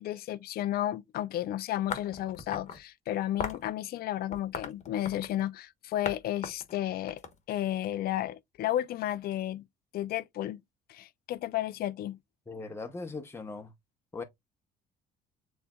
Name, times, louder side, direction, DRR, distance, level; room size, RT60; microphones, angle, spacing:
voice 1, 0.0-7.2 7.5-9.6 9.9-10.6 10.9-12.2, left 13 dB, 65° left, 0.5 m, -33 dB
sound 1, 1.9-2.8 3.4-3.7 4.3-5.4 6.1-6.2 6.4-7.9, left 6 dB, 45° left, 1.1 m, -37 dB
voice 2, 12.5-13.7 14.1-14.2, left 3 dB, 15° left, 0.8 m, -39 dB
7.1 x 3.2 x 2.3 m
cardioid pair, 110°, 17 cm